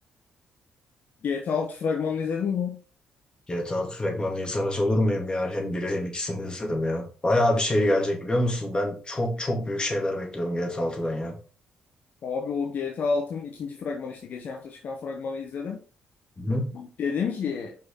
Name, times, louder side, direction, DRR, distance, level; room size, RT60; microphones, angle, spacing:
voice 1, 1.2-2.8 12.2-15.8 16.7-17.8, left 5 dB, 55° left, 1 dB, 1.1 m, -29 dB
voice 2, 3.5-11.4 16.4-16.7, left 1 dB, 25° left, 1 dB, 3.0 m, -26 dB
5.8 x 5.6 x 4.2 m, 0.37 s
hypercardioid pair, 45°, 4 cm